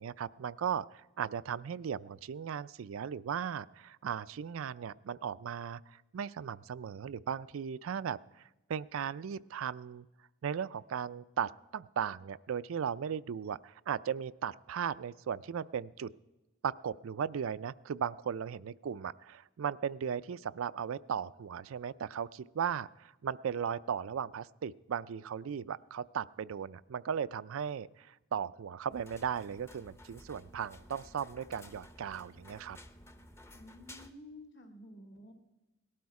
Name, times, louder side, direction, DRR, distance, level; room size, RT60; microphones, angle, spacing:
voice 1, 0.0-10.1 10.4-16.1 16.6-32.8, right 7 dB, 80° right, 16 dB, 0.4 m, -37 dB
sound 1, 28.9-34.1, left 1 dB, 15° left, 0.6 m, -54 dB
voice 2, 33.5-35.3, left 1 dB, 55° left, 5 dB, 2.2 m, -51 dB
18.5 x 12.0 x 4.8 m, 1.0 s
head